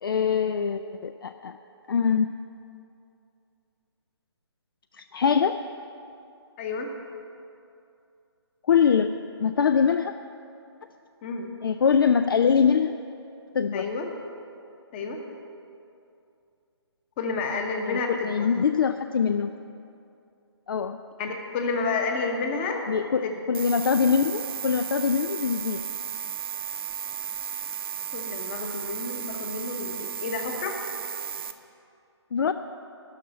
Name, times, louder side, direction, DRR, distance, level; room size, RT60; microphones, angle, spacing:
voice 1, 0.0-1.6 1.9-2.3 4.9-5.6 8.7-10.1 11.6-12.9 13.5-13.9 17.8-19.5 20.7-21.0 22.9-25.8 32.3-32.5, left 6 dB, 55° left, 10 dB, 0.4 m, -23 dB
voice 2, 6.6-6.9 11.2-11.5 13.7-14.1 14.9-15.3 17.2-18.5 21.2-22.9 23.2-23.4 28.1-30.8, left 4 dB, 25° left, 4 dB, 1.1 m, -30 dB
sound 1, 23.5-31.5, right 7 dB, 55° right, 0.8 m, -34 dB
13.0 x 5.7 x 9.4 m, 2.6 s
figure-of-eight pair, 145°, 14 cm